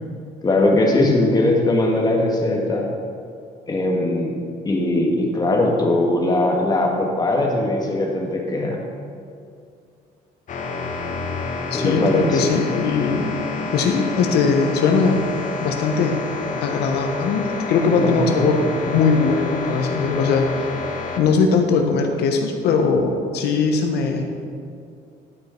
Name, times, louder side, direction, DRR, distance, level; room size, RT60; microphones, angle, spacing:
voice 1, 0.4-2.9 3.7-4.4 4.6-8.8 11.7-12.4 17.9-18.7, left 2 dB, 25° left, 0 dB, 1.6 m, -20 dB
sound 1, 10.5-21.2, left 3 dB, 50° left, 1.1 m, -29 dB
voice 2, 11.7-13.3 13.7-15.2 15.6-16.2 16.6-18.6 18.9-20.7 21.2-24.2, left 5 dB, 75° left, 4 dB, 1.1 m, -20 dB
12.0 x 5.4 x 4.5 m, 2.4 s
cardioid pair, 110°, 17 cm